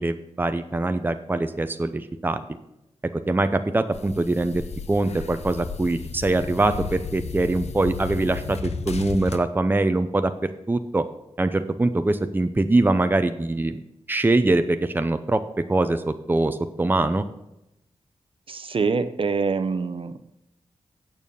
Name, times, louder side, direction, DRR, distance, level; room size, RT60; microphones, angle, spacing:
voice 1, 0.0-2.4 3.1-11.1 11.4-13.8 14.1-17.2, right 2 dB, 20° right, 9 dB, 0.6 m, -23 dB
sound 1, 3.9-9.4, left 5 dB, 75° left, 0.7 m, -34 dB
voice 2, 18.5-20.2, right 4 dB, 55° right, 11 dB, 0.7 m, -25 dB
9.0 x 7.1 x 5.3 m, 0.85 s
wide cardioid pair, 85°, 11 cm